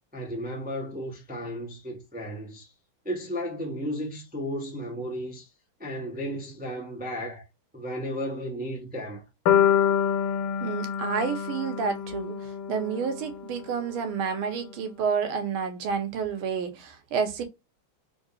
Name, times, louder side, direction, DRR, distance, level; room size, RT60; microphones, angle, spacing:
voice 1, 0.1-2.7 3.0-5.5 5.8-7.4 7.7-9.2, equal, 10° right, 0.4 m, -34 dB
sound 1, 9.5-13.6, left 9 dB, 75° left, 1.4 m, -26 dB
voice 2, 10.6-17.4, right 6 dB, 80° right, 1.7 m, -30 dB
3.8 x 3.5 x 2.3 m
omnidirectional pair, 2.3 m